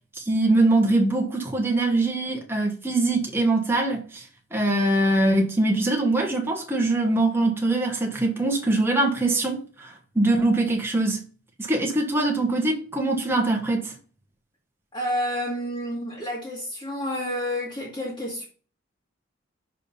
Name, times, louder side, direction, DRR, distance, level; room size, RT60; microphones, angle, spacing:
voice 1, 0.2-4.2 4.5-11.2 11.6-13.9, right 2 dB, 10° right, 1.4 m, -23 dB
voice 2, 14.9-18.4, equal, 25° left, 2.0 m, -29 dB
5.6 x 4.9 x 5.6 m
head